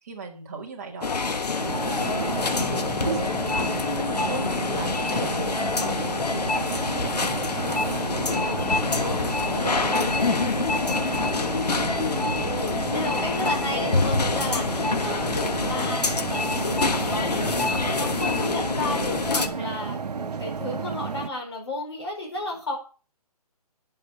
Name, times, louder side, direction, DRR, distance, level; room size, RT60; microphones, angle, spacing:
voice 1, 0.0-11.2 11.8-12.3, right 4 dB, 25° right, 0 dB, 2.4 m, -40 dB
sound 1, 1.0-19.5, left 4 dB, 90° left, 1.5 m, -26 dB
sound 2, 1.6-21.3, right 5 dB, 85° right, 1.0 m, -32 dB
voice 2, 12.1-22.8, left 2 dB, 40° left, 1 dB, 4.9 m, -33 dB
10.0 x 7.6 x 6.7 m, 0.37 s
hypercardioid pair, 180°, 20 cm